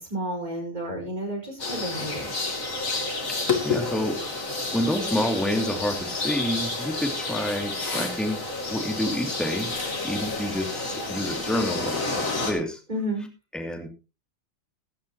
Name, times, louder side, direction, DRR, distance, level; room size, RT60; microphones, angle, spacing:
voice 1, 0.0-2.3 12.9-13.3, right 1 dB, 20° right, 1 dB, 5.3 m, -31 dB
sound 1, 1.6-12.5, left 3 dB, 35° left, 3.0 m, -30 dB
voice 2, 3.3-4.3 4.7-8.4 8.7-9.7 10.0-12.8 13.5-13.9, left 1 dB, ahead, 3 dB, 2.5 m, -28 dB
16.5 x 12.0 x 3.0 m, 0.29 s
omnidirectional pair, 2.4 m